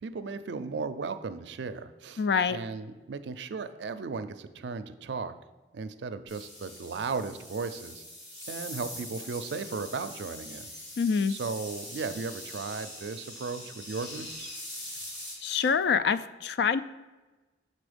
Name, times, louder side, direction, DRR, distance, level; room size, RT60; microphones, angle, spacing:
voice 1, 0.0-2.2 2.5-5.3 5.7-8.0 8.5-10.7 11.3-14.5, right 4 dB, 75° right, 11 dB, 0.4 m, -36 dB
voice 2, 2.2-2.6 11.0-11.3 15.4-16.8, left 6 dB, 65° left, 14 dB, 0.3 m, -25 dB
sound 1, 6.3-15.7, left 1 dB, 45° left, 2.3 m, -43 dB
6.1 x 4.2 x 5.0 m, 1.2 s
head